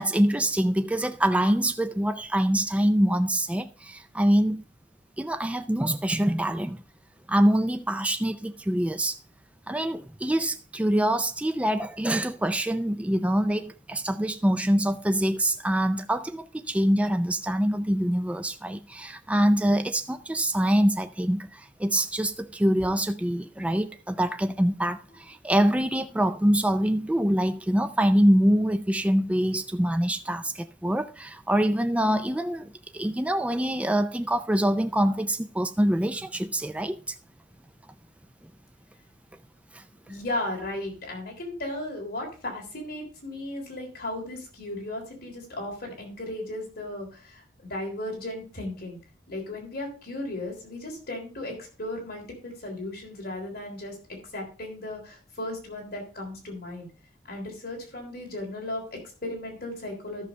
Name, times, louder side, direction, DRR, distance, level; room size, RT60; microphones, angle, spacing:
voice 1, 0.0-4.6 5.2-6.8 7.3-9.2 9.7-37.1 39.7-39.8, right 1 dB, 10° right, 0.4 m, -25 dB
voice 2, 40.0-47.4 47.7-49.0 49.3-53.9 54.3-56.9 57.3-60.3, left 1 dB, 55° left, 3.6 m, -35 dB
13.5 x 6.6 x 3.2 m
head